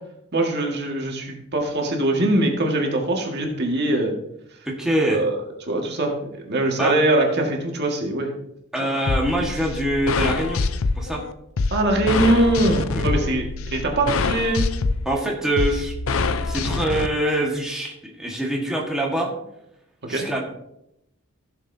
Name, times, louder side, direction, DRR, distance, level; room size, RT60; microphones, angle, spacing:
voice 1, 0.3-4.1 5.1-5.4 5.7-8.3 8.8-8.9 11.7-13.5 13.7-14.6 20.1-20.3, right 1 dB, 55° right, 1 dB, 1.8 m, -22 dB
voice 2, 4.7-5.2 6.8-7.0 8.7-10.6 10.9-11.2 12.9-13.0 15.0-15.9 16.4-19.3 20.1-20.4, right 1 dB, 5° right, -2 dB, 1.5 m, -24 dB
sound 1, 9.1-17.1, left 3 dB, 80° left, 0.6 m, -25 dB
15.5 x 7.1 x 2.7 m, 0.80 s
head